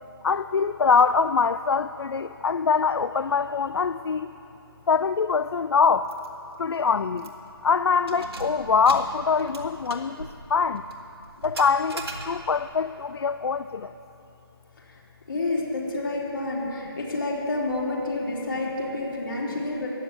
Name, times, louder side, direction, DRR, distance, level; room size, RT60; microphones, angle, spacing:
voice 1, 0.2-4.3 4.9-6.1 6.6-7.3 7.6-10.8 11.4-13.9, left 5 dB, 75° left, 12 dB, 0.4 m, -23 dB
Keys jangling, 6.1-6.3 6.6-6.7 7.2-7.5 7.9-12.7, right 2 dB, 75° right, 2.1 m, -40 dB
voice 2, 15.3-19.9, left 2 dB, 55° left, -4 dB, 3.8 m, -29 dB
14.0 x 9.8 x 7.3 m, 2.9 s
figure-of-eight pair, 175°, 13 cm